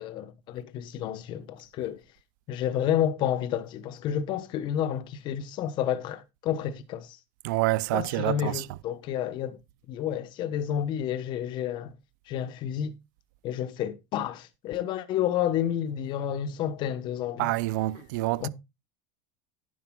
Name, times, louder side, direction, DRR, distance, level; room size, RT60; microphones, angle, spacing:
voice 1, 0.0-2.0 2.5-7.2 7.9-9.6 9.9-11.9 12.3-12.9 13.4-17.5 18.4-18.5, left 10 dB, 50° left, 1.1 m, -30 dB
voice 2, 7.4-8.7 17.4-18.5, right 18 dB, 75° right, 0.5 m, -27 dB
11.0 x 10.0 x 2.3 m
supercardioid pair, 110°, 10 cm